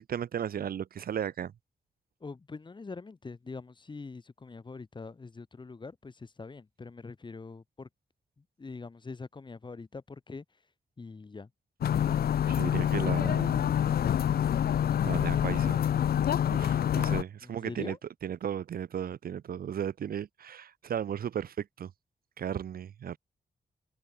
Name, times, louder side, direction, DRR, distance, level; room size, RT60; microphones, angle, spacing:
voice 1, 0.0-1.5 12.5-13.7 15.0-15.8 16.5-18.0 18.2-21.9 22.4-23.2, right 9 dB, 70° right, 0.7 m, -35 dB
voice 2, 2.2-7.9 8.6-10.4 11.0-11.5 17.4-18.0, left 4 dB, 30° left, 3.3 m, -43 dB
sound 1, 11.8-17.2, left 9 dB, 75° left, 0.7 m, -26 dB
wide cardioid pair, 160°, 16 cm